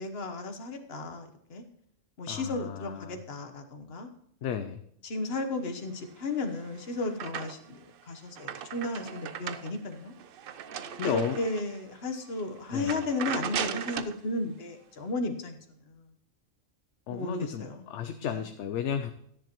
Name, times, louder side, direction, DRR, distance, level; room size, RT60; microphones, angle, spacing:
voice 1, 0.0-1.6 2.2-4.1 5.0-7.8 8.1-10.1 11.0-15.6 15.9-16.0 17.1-17.8 18.2-18.5, left 2 dB, 50° left, 6 dB, 1.3 m, -34 dB
voice 2, 2.3-3.2 4.4-4.8 11.0-11.4 12.7-13.0 17.1-19.1, left 8 dB, 65° left, 8 dB, 0.8 m, -33 dB
sound 1, 6.3-7.8 8.2-11.8 12.3-12.4 12.8-14.2, right 8 dB, 65° right, 0.5 m, -37 dB
13.0 x 10.0 x 3.0 m, 0.70 s
omnidirectional pair, 1.4 m